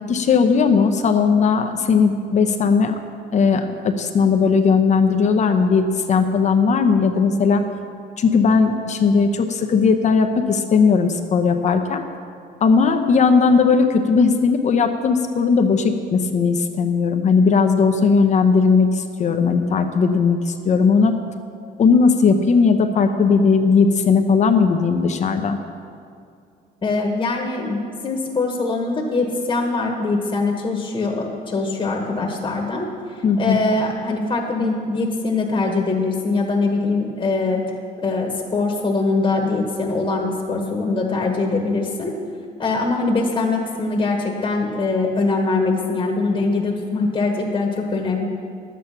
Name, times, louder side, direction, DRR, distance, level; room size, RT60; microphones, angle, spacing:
voice 1, 0.1-3.0 3.3-7.6 8.2-12.0 12.6-21.1 21.8-25.6 33.2-33.6, left 5 dB, 45° left, 6 dB, 0.8 m, -17 dB
voice 2, 26.8-32.9 33.1-37.6 38.0-42.1 42.6-48.3, left 3 dB, 30° left, 0 dB, 1.4 m, -22 dB
11.0 x 8.3 x 5.8 m, 2.4 s
cardioid pair, 110°, 17 cm